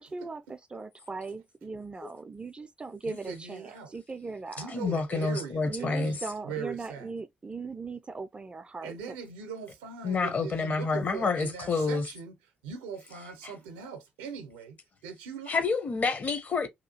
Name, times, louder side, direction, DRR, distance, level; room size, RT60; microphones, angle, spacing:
voice 1, 0.0-4.7 5.6-9.0, right 4 dB, 25° right, 0.3 m, -39 dB
voice 2, 3.1-3.9 4.6-6.2 6.4-7.1 8.8-12.4 12.6-15.6, right 6 dB, 75° right, 0.5 m, -40 dB
voice 3, 4.7-6.2 10.0-12.0 13.4-13.5 15.5-16.7, left 4 dB, 40° left, 0.7 m, -28 dB
2.8 x 2.3 x 2.7 m
figure-of-eight pair, 45°, 4 cm